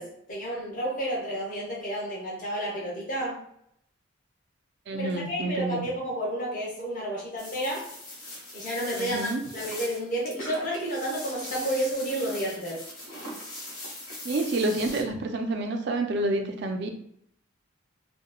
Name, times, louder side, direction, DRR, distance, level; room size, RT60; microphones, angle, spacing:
voice 1, 0.0-3.4 4.9-7.9 8.5-12.9, right 1 dB, 40° left, -4 dB, 0.7 m, -31 dB
voice 2, 4.9-5.8 9.0-9.4 14.2-16.9, right 2 dB, 50° right, 4 dB, 0.3 m, -28 dB
sound 1, 7.4-15.0, left 1 dB, 80° left, 0.8 m, -40 dB
2.9 x 2.1 x 2.2 m, 0.70 s
head